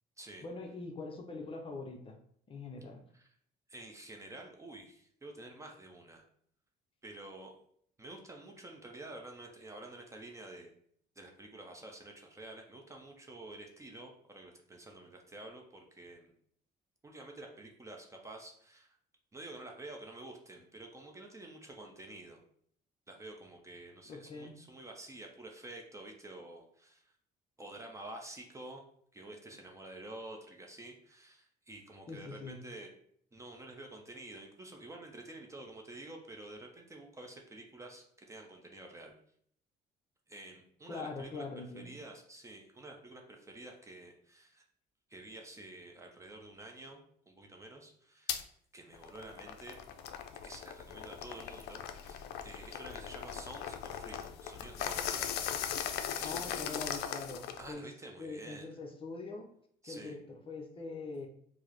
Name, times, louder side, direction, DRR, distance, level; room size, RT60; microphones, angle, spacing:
voice 1, 0.4-2.2 2.5-3.0 24.1-24.5 32.1-32.6 40.9-41.9 56.2-57.9 58.2-59.5 59.8-61.3, left 3 dB, 30° left, 2 dB, 0.6 m, -43 dB
voice 2, 3.7-6.2 7.0-7.5 8.0-10.7 11.2-16.3 17.0-19.0 19.3-22.4 23.1-27.1 27.6-28.8 29.1-32.9 33.3-39.1 40.3-44.6 45.1-48.4 48.7-49.8 50.4-55.3 56.1-56.8 57.6-58.7 59.8-60.2, right 2 dB, 15° right, 1 dB, 0.6 m, -49 dB
sound 1, 48.3-48.4 48.9-57.7, left 9 dB, 75° left, 0.4 m, -39 dB
4.6 x 2.0 x 2.9 m, 0.64 s
cardioid pair, 110°, 17 cm